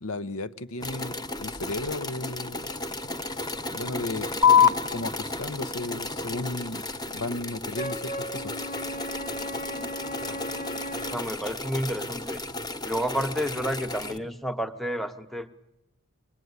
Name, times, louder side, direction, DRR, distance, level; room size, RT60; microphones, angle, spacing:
voice 1, 0.0-2.7 3.7-6.8 7.1-8.6, left 2 dB, 80° left, 0.9 m, -35 dB
sound 1, 0.8-14.2, left 2 dB, 20° left, 1.1 m, -35 dB
sound 2, 4.4-11.4, left 8 dB, 20° right, 0.9 m, -28 dB
Wind instrument woodwind instrument, 7.7-11.3, equal, 40° left, 1.1 m, -36 dB
voice 2, 11.1-12.4 12.8-15.5, equal, ahead, 1.1 m, -31 dB
25.0 x 20.5 x 9.6 m
head